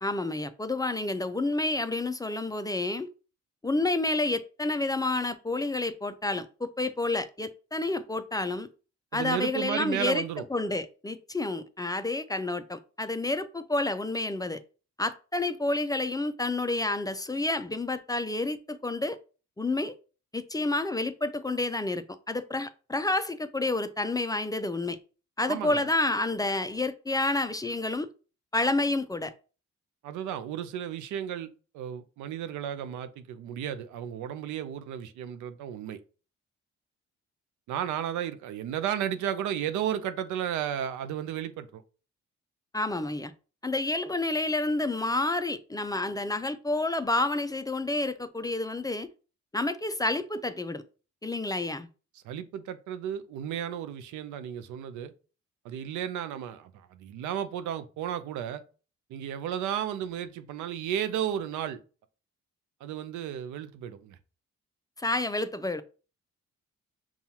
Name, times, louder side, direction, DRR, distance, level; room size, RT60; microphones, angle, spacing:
voice 1, 0.0-3.1 3.6-8.7 9.1-14.6 15.0-19.2 19.6-19.9 20.3-25.0 25.4-28.1 28.5-29.3 42.7-43.3 43.6-49.1 49.5-50.8 51.2-51.9 65.0-65.8, left 2 dB, 15° left, 0.3 m, -29 dB
voice 2, 9.1-10.4 25.5-25.9 30.0-36.0 37.7-41.8 52.2-55.1 55.6-58.6 59.1-61.8 62.8-64.2, right 10 dB, 90° right, 0.5 m, -33 dB
5.6 x 2.4 x 2.8 m
cardioid pair, 70°, 29 cm